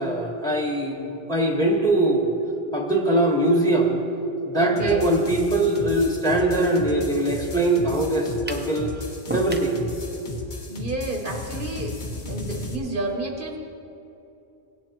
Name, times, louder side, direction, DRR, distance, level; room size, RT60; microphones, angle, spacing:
voice 1, 0.0-2.3 2.7-4.0 4.4-8.9 9.3-9.8, right 1 dB, 5° left, 0 dB, 1.3 m, -22 dB
voice 2, 4.5-5.1 10.7-12.0 12.3-13.6, right 2 dB, 55° right, 2 dB, 1.0 m, -30 dB
sound 1, 4.8-12.8, left 2 dB, 50° left, 1.2 m, -35 dB
sound 2, 8.5-8.7 9.3-9.8, right 2 dB, 15° right, 0.5 m, -31 dB
18.0 x 9.7 x 3.0 m, 2.8 s
omnidirectional pair, 1.1 m